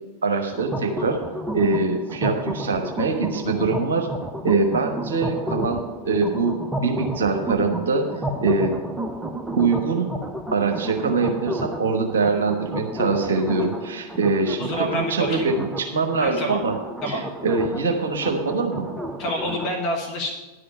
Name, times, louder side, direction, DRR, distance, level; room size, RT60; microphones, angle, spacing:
voice 1, 0.2-1.2 1.5-4.1 4.4-8.7 9.5-10.1 10.5-16.7 17.1-18.9, right 4 dB, 65° right, 3 dB, 1.1 m, -23 dB
sound 1, 0.5-19.7, right 1 dB, 10° right, 0.7 m, -32 dB
voice 2, 14.6-15.5 16.2-16.6 17.0-17.2 19.2-20.3, equal, 35° left, 0 dB, 1.5 m, -27 dB
11.0 x 5.0 x 8.1 m, 1.1 s
figure-of-eight pair, 90°, 0 cm